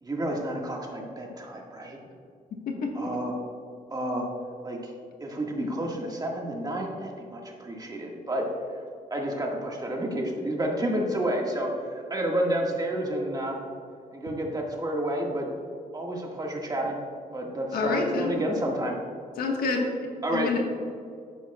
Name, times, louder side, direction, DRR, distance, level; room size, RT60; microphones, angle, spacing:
voice 1, 0.0-2.0 3.0-3.3 3.9-4.3 4.6-4.9 5.2-8.5 9.1-13.6 14.1-15.5 15.9-17.0 17.3-19.0 20.2-20.5, right 1 dB, 25° right, 0 dB, 1.7 m, -30 dB
voice 2, 2.5-3.1 17.7-18.3 19.4-19.9 20.3-20.6, left 4 dB, 80° left, 1 dB, 1.4 m, -28 dB
10.5 x 9.1 x 2.3 m, 2.3 s
cardioid pair, 90°, 15 cm